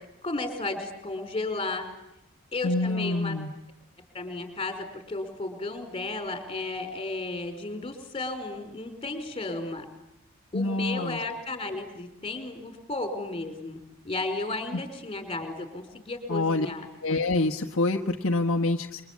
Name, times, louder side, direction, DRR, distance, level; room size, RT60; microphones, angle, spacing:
voice 1, 0.2-1.9 2.5-3.4 4.1-9.8 10.5-13.8 14.0-16.9, left 2 dB, 25° left, 6 dB, 5.0 m, -33 dB
voice 2, 2.6-3.5 10.5-11.2 16.3-16.7 17.0-19.0, left 2 dB, 60° left, 3 dB, 1.5 m, -26 dB
28.5 x 23.5 x 8.7 m, 0.88 s
head